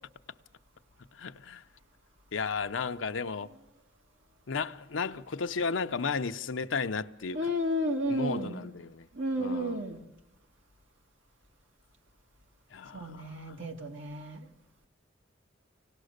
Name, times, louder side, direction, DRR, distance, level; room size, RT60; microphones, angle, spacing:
voice 1, 1.2-1.6 2.3-3.5 4.5-7.4 8.1-9.1 9.4-9.8 12.7-13.3, left 5 dB, 90° left, 0.7 m, -34 dB
voice 2, 7.3-8.7 9.1-10.0 12.9-14.5, equal, 80° right, 2.1 m, -32 dB
25.5 x 18.5 x 6.5 m
head